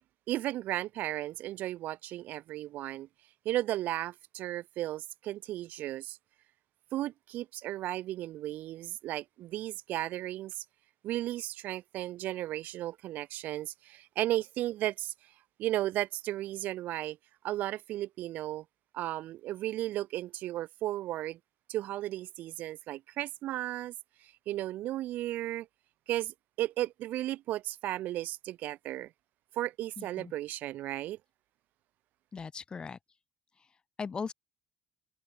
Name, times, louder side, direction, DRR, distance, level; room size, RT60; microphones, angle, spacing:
voice 1, 0.3-3.1 3.4-6.2 6.9-10.6 11.0-15.1 15.6-17.2 17.4-18.6 18.9-21.4 21.7-23.9 24.2-25.7 26.1-29.1 29.5-31.2, right 14 dB, 70° right, 6.9 m, -35 dB
voice 2, 30.0-30.3 32.3-33.0 34.0-34.3, left 5 dB, 30° left, 7.5 m, -38 dB
cardioid pair, 115°, 3 cm